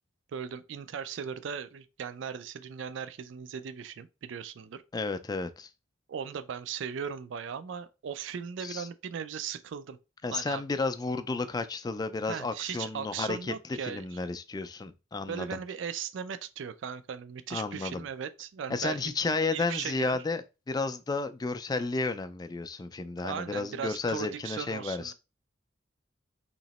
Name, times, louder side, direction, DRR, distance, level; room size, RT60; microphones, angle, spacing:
voice 1, 0.3-4.8 6.1-10.0 10.3-10.6 12.3-14.2 15.3-19.0 19.5-20.2 23.2-25.1, right 7 dB, 65° right, 0.4 m, -38 dB
voice 2, 4.9-5.7 8.6-8.9 10.2-13.5 13.8-15.6 17.5-18.1 18.7-25.1, left 3 dB, 20° left, 0.3 m, -32 dB
3.0 x 2.8 x 4.0 m
head